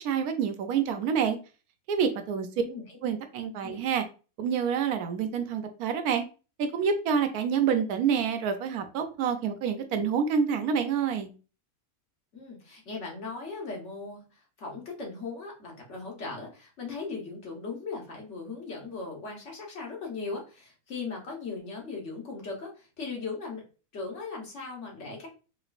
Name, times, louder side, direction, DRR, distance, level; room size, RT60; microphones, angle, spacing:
voice 1, 0.0-1.4 1.9-2.5 3.0-4.0 4.4-6.2 6.7-11.3, right 7 dB, 85° right, 7 dB, 1.1 m, -27 dB
voice 2, 2.6-3.0 3.6-3.8 12.3-23.6 23.9-25.3, left 4 dB, 55° left, 0 dB, 1.4 m, -38 dB
3.9 x 3.1 x 2.5 m, 0.34 s
omnidirectional pair, 1.6 m